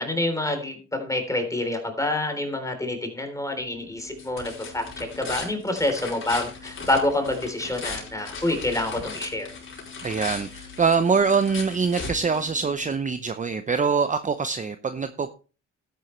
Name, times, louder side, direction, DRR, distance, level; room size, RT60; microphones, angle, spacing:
voice 1, 0.0-9.5, left 1 dB, 10° left, 5 dB, 3.6 m, -27 dB
sound 1, 3.5-13.0, left 4 dB, 45° left, 4.5 m, -38 dB
voice 2, 10.0-15.3, right 5 dB, 25° right, 10 dB, 0.7 m, -24 dB
12.5 x 10.5 x 3.2 m, 0.35 s
cardioid pair, 90°, 30 cm